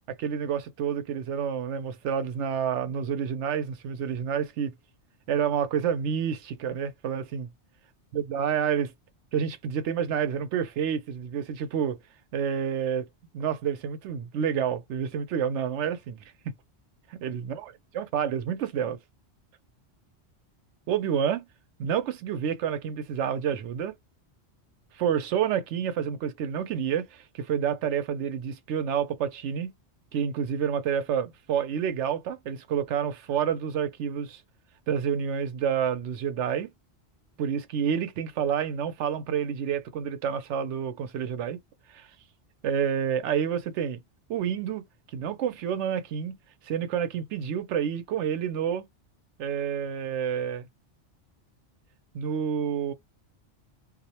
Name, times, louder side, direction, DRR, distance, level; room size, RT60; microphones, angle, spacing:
voice 1, 0.2-4.7 5.3-7.5 8.1-8.9 9.3-12.0 12.3-13.1 13.3-16.2 17.1-17.6 17.9-19.0 20.9-21.5 21.8-23.9 24.9-29.7 30.1-34.4 34.9-36.7 37.4-41.6 41.9-42.1 42.6-44.0 44.3-44.9 45.1-46.4 46.6-48.9 49.4-50.7 52.1-52.9, right 8 dB, 80° right, 0.9 m, -29 dB
2.4 x 2.1 x 2.7 m
omnidirectional pair, 1.2 m